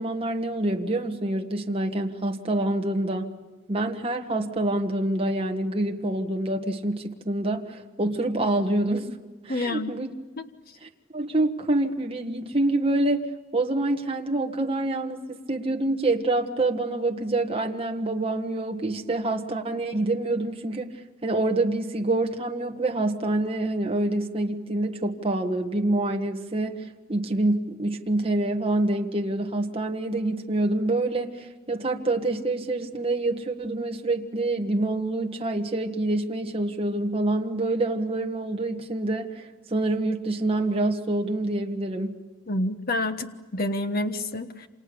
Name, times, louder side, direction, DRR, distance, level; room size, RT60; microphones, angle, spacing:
voice 1, 0.0-3.3 3.7-9.1 9.4-10.1 10.8-20.9 21.2-42.2, right 2 dB, 25° right, 2 dB, 1.5 m, -26 dB
voice 2, 9.5-9.9 42.5-44.7, left 1 dB, 45° left, 8 dB, 1.4 m, -28 dB
28.5 x 27.0 x 7.0 m, 1.3 s
head